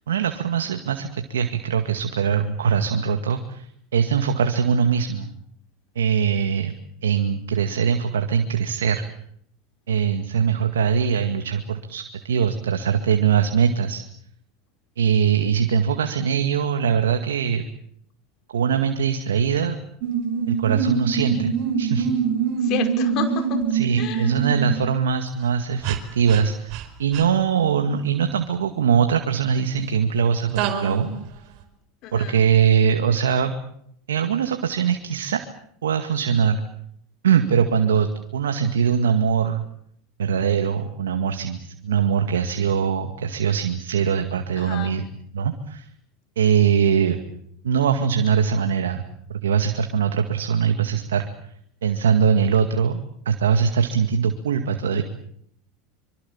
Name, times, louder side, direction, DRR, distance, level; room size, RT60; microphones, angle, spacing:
voice 1, 0.1-5.3 6.0-6.7 7.0-9.1 9.9-14.0 15.0-17.7 18.5-19.8 20.5-22.2 23.7-26.7 27.0-31.1 32.1-33.5 34.1-35.4 35.8-36.6 37.2-39.6 40.2-45.0 45.3-45.9 46.4-47.2 47.6-49.0 49.3-51.3 51.8-53.0 53.3-55.0, right 7 dB, 85° right, 7 dB, 2.1 m, -22 dB
sound 1, 20.0-24.8 25.8-26.0 26.3-26.4 26.7-26.8 27.1-27.2 30.6-31.1, right 7 dB, 60° right, 4.7 m, -24 dB
voice 2, 22.6-23.6 24.0-24.3 32.0-32.4 44.6-44.9, left 8 dB, 55° left, 7 dB, 5.2 m, -30 dB
25.0 x 25.0 x 7.3 m, 0.68 s
hypercardioid pair, 95°, 0 cm